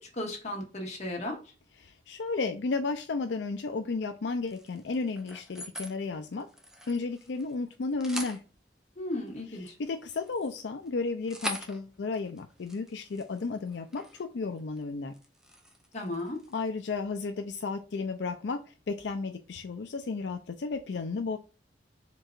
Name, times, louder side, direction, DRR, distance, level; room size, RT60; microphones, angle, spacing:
voice 1, 0.2-1.4 9.0-9.6 15.9-16.4, left 1 dB, 40° left, 0 dB, 1.7 m, -35 dB
voice 2, 1.8-6.5 6.9-8.4 9.5-15.1 16.5-21.4, left 4 dB, 85° left, 6 dB, 0.5 m, -33 dB
sound 1, 4.5-6.0 6.3-7.6 7.8-8.4 9.3-14.3 14.6-14.8 15.1-16.7, equal, 5° right, 0.7 m, -43 dB
4.5 x 3.8 x 2.5 m, 0.33 s
head